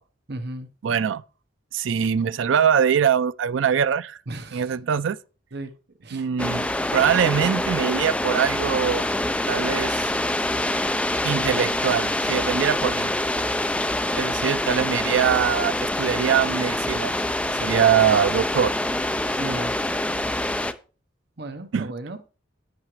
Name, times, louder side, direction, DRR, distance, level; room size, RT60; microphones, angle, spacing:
voice 1, 0.3-0.7 4.3-4.8 5.5-5.7 6.0-6.3 19.4-19.7 21.4-22.2, right 2 dB, 60° right, 1.0 m, -34 dB
voice 2, 0.8-1.2 1.7-4.2 4.5-5.2 6.1-6.7 6.9-9.1 9.5-10.1 11.2-13.1 14.2-17.1 17.5-18.7 21.7-21.9, right 8 dB, 75° right, 0.4 m, -22 dB
sound 1, 6.4-20.7, left 1 dB, 5° left, 0.5 m, -25 dB
10.5 x 8.8 x 3.1 m
head